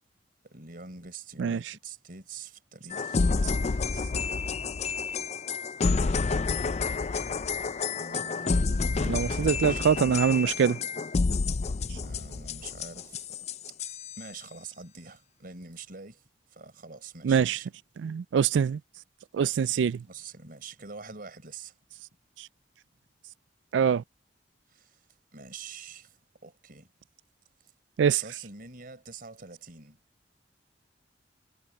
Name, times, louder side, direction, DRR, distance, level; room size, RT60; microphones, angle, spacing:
voice 1, 0.4-3.3 7.9-10.0 11.7-13.8 14.2-17.7 20.1-21.8 24.7-25.0 25.3-26.9 28.1-30.0, right 4 dB, 55° right, 4.4 m, -45 dB
sound 1, 2.9-14.2, left 4 dB, 40° left, 0.4 m, -29 dB
voice 2, 9.1-10.8 17.2-17.6 18.0-18.8 19.3-20.0 23.7-24.0 28.0-28.2, right 7 dB, 90° right, 0.3 m, -24 dB
head